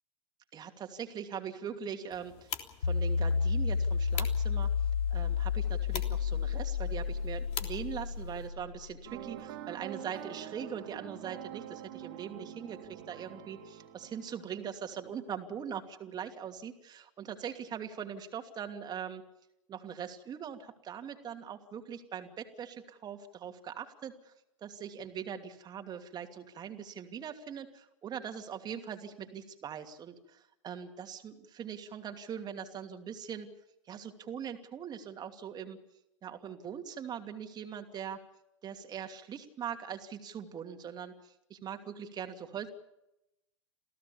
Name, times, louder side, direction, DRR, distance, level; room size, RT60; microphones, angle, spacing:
voice 1, 0.5-2.5 2.8-4.7 5.1-19.2 19.7-24.3 24.6-33.5 33.9-35.8 36.2-38.2 38.6-42.7, right 8 dB, 25° right, 5 dB, 2.8 m, -41 dB
sound 1, 2.1-8.5, left 11 dB, 40° left, 3.4 m, -45 dB
sound 2, 2.8-9.1, left 6 dB, 80° left, 0.9 m, -31 dB
sound 3, 9.0-15.3, right 10 dB, 55° right, 2.8 m, -46 dB
28.5 x 16.5 x 7.1 m, 0.86 s
figure-of-eight pair, 95°, 16 cm